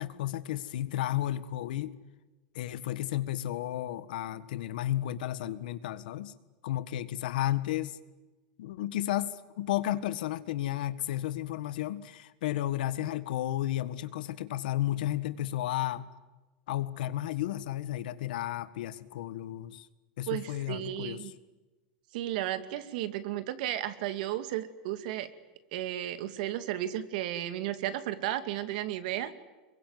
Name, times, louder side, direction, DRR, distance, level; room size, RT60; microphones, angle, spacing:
voice 1, 0.0-1.9 2.5-6.3 6.6-8.0 8.6-16.1 16.7-19.9 20.2-21.3, left 13 dB, 85° left, 13 dB, 1.6 m, -33 dB
voice 2, 20.3-21.3 22.1-25.3 25.7-29.3, right 13 dB, 70° right, 11 dB, 2.2 m, -34 dB
26.0 x 22.5 x 9.5 m, 1.2 s
supercardioid pair, 140°, 5 cm